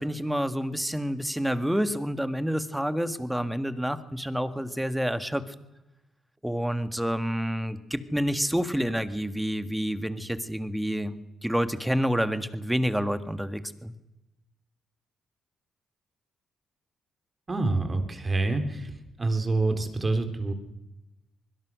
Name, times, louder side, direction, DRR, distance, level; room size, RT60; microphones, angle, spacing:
voice 1, 0.0-5.4 6.4-13.9, equal, 5° right, 10 dB, 1.8 m, -28 dB
voice 2, 17.5-18.9 19.2-20.5, right 2 dB, 25° right, 7 dB, 3.7 m, -26 dB
25.0 x 21.0 x 6.4 m, 0.96 s
cardioid pair, 90°, 0 cm